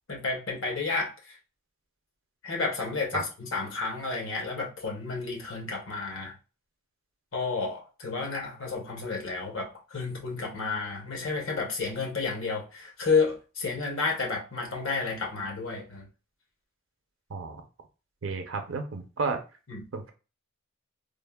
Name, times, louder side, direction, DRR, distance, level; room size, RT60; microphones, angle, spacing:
voice 1, 0.1-1.4 2.4-6.3 7.3-16.1 19.7-19.9, left 4 dB, 70° left, 0.8 m, -31 dB
voice 2, 17.3-17.6 18.2-19.4 19.9-20.1, right 4 dB, 65° right, 0.6 m, -32 dB
3.2 x 2.0 x 2.2 m
head